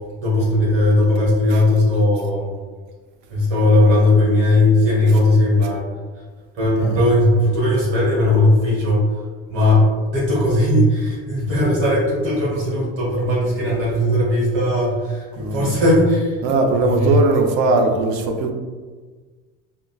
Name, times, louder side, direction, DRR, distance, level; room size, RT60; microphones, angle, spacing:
voice 1, 0.2-2.5 3.3-5.9 6.5-9.0 9.5-16.4 16.8-17.1, left 1 dB, 40° right, -6 dB, 1.3 m, -17 dB
voice 2, 15.3-15.7 16.4-18.5, right 3 dB, 80° right, 4 dB, 0.5 m, -19 dB
3.7 x 2.0 x 2.3 m, 1.4 s
cardioid pair, 175°, 30 cm